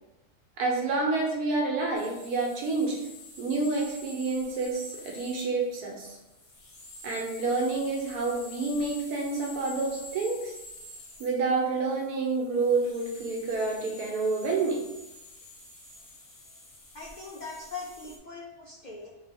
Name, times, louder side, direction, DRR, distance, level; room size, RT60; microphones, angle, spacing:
voice 1, 0.6-3.0 3.4-6.1 7.0-10.5 11.2-14.8, right 3 dB, 85° right, 0 dB, 1.4 m, -28 dB
sound 1, 1.9-18.2, left 2 dB, 60° left, 1.1 m, -48 dB
voice 2, 16.9-19.1, left 4 dB, 75° left, -5 dB, 0.4 m, -41 dB
3.8 x 3.3 x 2.7 m, 0.95 s
omnidirectional pair, 1.6 m